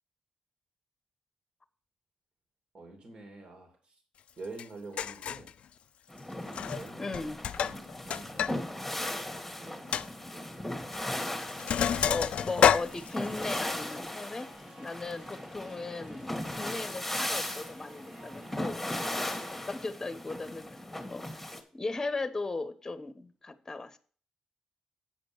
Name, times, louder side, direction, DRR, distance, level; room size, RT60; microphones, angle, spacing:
voice 1, 2.7-4.0 4.4-5.5 6.4-7.2 7.6-10.7, right 3 dB, 50° right, 3 dB, 2.6 m, -48 dB
Sink (filling or washing), 4.6-4.7 5.0-5.5 6.5-6.9 7.1-8.5 8.8-8.9 9.4-9.5 9.9-10.1 10.9-11.1 11.4-13.6, left 9 dB, 70° left, 0.3 m, -28 dB
sound 1, 6.1-21.6, left 1 dB, 5° left, 1.7 m, -38 dB
voice 2, 7.0-7.4 12.0-18.8 19.1-20.8 21.1-21.3 21.7-24.0, left 3 dB, 25° left, 11 dB, 1.0 m, -37 dB
sound 2, 12.5-19.2, right 1 dB, 85° right, 3.2 m, -54 dB
8.8 x 5.2 x 6.1 m, 0.43 s
cardioid pair, 90°, 2 cm